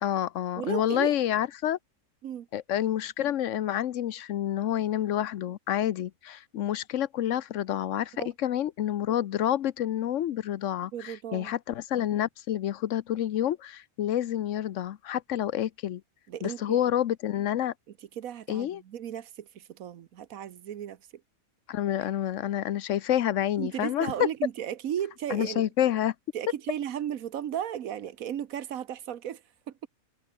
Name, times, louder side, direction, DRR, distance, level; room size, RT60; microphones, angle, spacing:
voice 1, 0.0-1.8 2.5-16.0 16.4-17.7 18.5-18.8 21.7-24.3 25.3-26.1, left 11 dB, 65° left, 1.0 m, -28 dB
voice 2, 0.6-1.1 2.2-2.5 8.1-8.3 10.9-11.6 16.3-16.8 18.2-21.0 23.6-25.7 26.3-29.7, right 10 dB, 90° right, 1.4 m, -35 dB
omnidirectional pair, 1.4 m